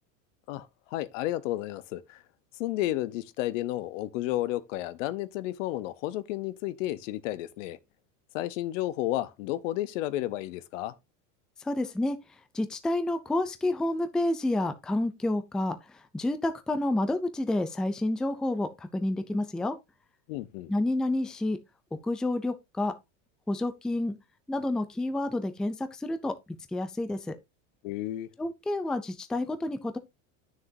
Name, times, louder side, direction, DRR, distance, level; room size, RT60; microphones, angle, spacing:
voice 1, 0.5-2.2 2.6-7.8 8.3-10.9 20.3-20.7 27.8-28.3, left 15 dB, 75° left, 0.9 m, -32 dB
voice 2, 11.6-12.2 12.5-19.8 20.7-21.6 22.0-22.9 23.5-24.2 24.5-26.3 26.7-27.3 28.4-30.0, left 2 dB, ahead, 0.4 m, -29 dB
9.6 x 6.5 x 2.7 m
supercardioid pair, 145°, 38 cm